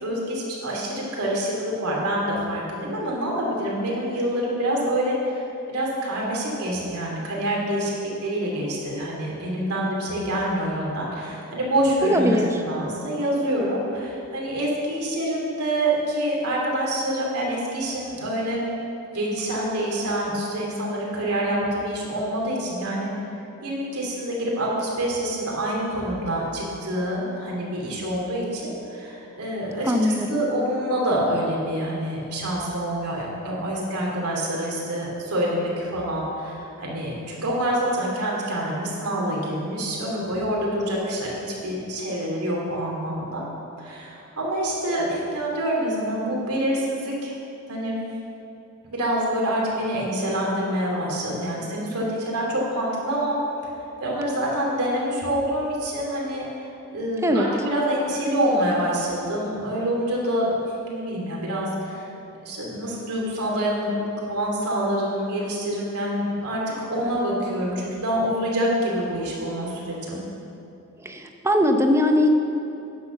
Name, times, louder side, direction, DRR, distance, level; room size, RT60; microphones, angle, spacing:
voice 1, 0.0-5.4 5.7-18.7 19.1-23.1 23.6-43.4 43.8-47.3 47.7-48.0 48.9-53.4 54.0-62.1 62.4-66.6 66.9-70.2, right 1 dB, 90° right, -3 dB, 2.7 m, -26 dB
voice 2, 12.0-12.5 29.8-30.4 57.2-57.5 71.0-72.4, left 1 dB, 10° right, 4 dB, 0.7 m, -20 dB
9.6 x 6.5 x 6.9 m, 2.8 s
head